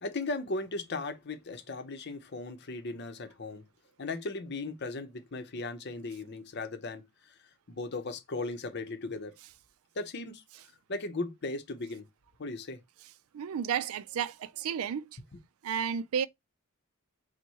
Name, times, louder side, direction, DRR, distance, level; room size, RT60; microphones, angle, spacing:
voice 1, 0.0-3.6 4.0-7.3 7.7-9.3 10.0-10.4 10.9-12.1 12.4-12.8, left 3 dB, 55° left, 0.7 m, -37 dB
voice 2, 13.3-15.0 15.6-16.3, right 8 dB, 80° right, 0.4 m, -32 dB
4.6 x 2.2 x 4.1 m
head